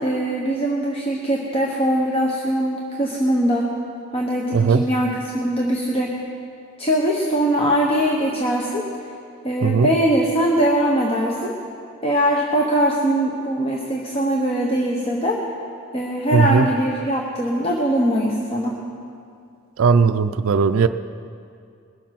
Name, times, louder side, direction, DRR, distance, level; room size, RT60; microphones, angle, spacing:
voice 1, 0.0-3.7 4.1-6.2 6.8-8.8 9.4-11.6 12.0-15.4 15.9-18.8, right 1 dB, 30° left, -1 dB, 1.0 m, -21 dB
voice 2, 4.5-4.8 9.6-9.9 16.3-16.7 19.8-20.9, right 5 dB, 75° right, 8 dB, 0.4 m, -17 dB
21.0 x 7.3 x 5.8 m, 2.4 s
head